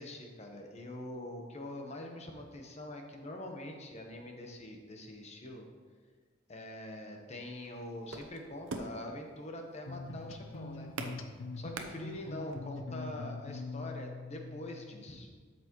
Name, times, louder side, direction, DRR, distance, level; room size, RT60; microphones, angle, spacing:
voice 1, 0.0-5.7 6.5-10.9 11.6-15.3, left 1 dB, 35° left, 2 dB, 1.0 m, -44 dB
sound 1, 7.5-12.6, right 3 dB, 80° right, 0.8 m, -44 dB
sound 2, 9.9-15.0, left 3 dB, 80° left, 0.6 m, -43 dB
12.5 x 6.1 x 3.1 m, 1.5 s
head